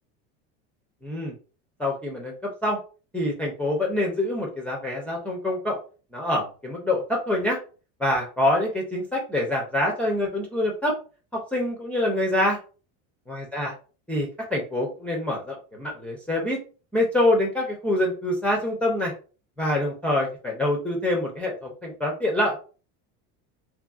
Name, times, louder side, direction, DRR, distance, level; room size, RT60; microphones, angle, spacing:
voice 1, 1.0-1.3 1.8-2.3 2.6-2.8 3.1-5.8 6.1-7.6 8.0-11.0 11.3-12.6 13.3-13.7 14.1-16.6 16.9-19.1 19.6-22.6, left 1 dB, 5° left, -2 dB, 0.4 m, -25 dB
3.0 x 2.5 x 2.3 m, 0.36 s
cardioid pair, 140°, 36 cm